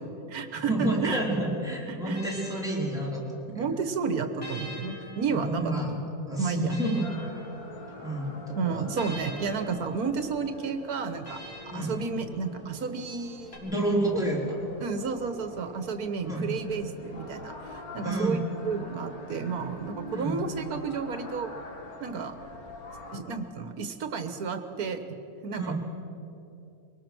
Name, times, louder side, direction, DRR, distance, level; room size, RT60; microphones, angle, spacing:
voice 1, 0.0-1.2 1.9-2.2 3.5-5.7 6.4-6.7 8.6-13.6 14.1-14.2 14.8-21.5 22.0-22.3 23.1-25.0 25.4-25.7, right 5 dB, 70° right, 9 dB, 1.7 m, -32 dB
voice 2, 0.5-3.7 5.3-6.0 6.3-7.0 8.0-8.8 11.7-11.9 13.6-14.6 16.2-16.5 18.0-18.4 20.1-20.5 25.6-25.7, right 1 dB, ahead, -3 dB, 3.8 m, -29 dB
sound 1, 1.8-3.6 4.4-8.2 9.0-12.7 13.5-13.6, equal, 40° left, 3.4 m, -46 dB
sound 2, 7.0-23.2, left 1 dB, 70° left, 2.5 m, -45 dB
23.0 x 19.0 x 6.2 m, 2.9 s
omnidirectional pair, 1.6 m